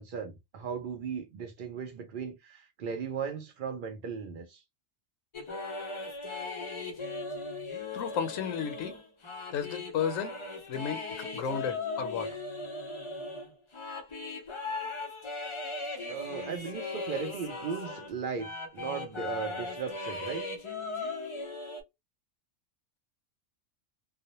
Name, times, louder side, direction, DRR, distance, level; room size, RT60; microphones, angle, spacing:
voice 1, 0.0-4.6 16.1-20.5, right 6 dB, 65° right, 0.5 m, -37 dB
sound 1, 5.3-18.1 18.4-21.8, left 3 dB, 50° left, 0.3 m, -38 dB
voice 2, 7.9-9.0 9.5-10.4 10.7-12.3, left 7 dB, 90° left, 1.0 m, -33 dB
2.4 x 2.0 x 2.8 m
omnidirectional pair, 1.3 m